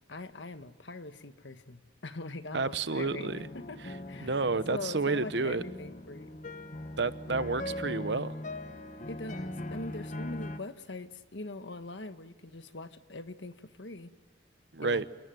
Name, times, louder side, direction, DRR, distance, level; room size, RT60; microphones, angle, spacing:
voice 1, 0.1-3.3 3.5-3.8 4.1-6.4 9.1-14.1 14.8-15.0, left 2 dB, 85° left, 10 dB, 1.4 m, -42 dB
voice 2, 2.5-3.4 3.8-3.9 4.2-5.6 7.0-8.3 14.7-15.1, right 3 dB, 70° right, 14 dB, 1.0 m, -30 dB
sound 1, 3.0-10.6, left 1 dB, 45° left, 1.1 m, -40 dB
29.0 x 18.5 x 9.2 m, 1.5 s
head